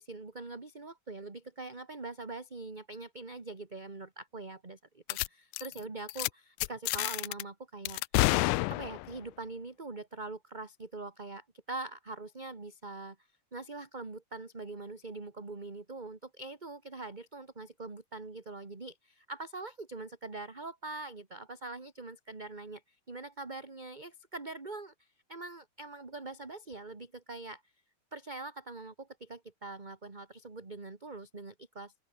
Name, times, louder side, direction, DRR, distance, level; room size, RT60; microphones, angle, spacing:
voice 1, 0.0-8.0 8.7-13.2 13.5-27.6 28.1-31.9, right 3 dB, 15° right, 1.8 m, -43 dB
sound 1, 5.1-5.3 5.5-5.8 6.1-6.3 6.6-7.4 7.9-9.2, left 22 dB, 85° left, 2.0 m, -29 dB
open air
omnidirectional pair, 3.6 m